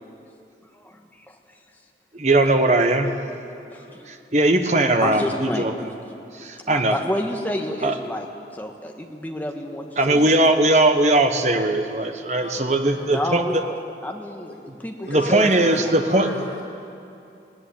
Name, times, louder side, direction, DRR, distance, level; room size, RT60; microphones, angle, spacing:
voice 1, 0.7-1.2 3.7-4.1 5.0-5.7 6.3-6.4 6.7-8.3 8.5-10.3 13.1-13.8 14.0-15.9, left 1 dB, 10° left, 2 dB, 1.5 m, -30 dB
voice 2, 2.1-3.2 4.1-5.7 6.4-7.0 7.8-7.9 10.0-13.4 15.1-16.3, right 2 dB, 40° right, 6 dB, 1.3 m, -19 dB
voice 3, 3.5-4.0 12.4-13.2 14.4-14.6 14.8-16.6, left 1 dB, 75° left, -2 dB, 6.2 m, -37 dB
19.0 x 18.0 x 8.7 m, 2.6 s
head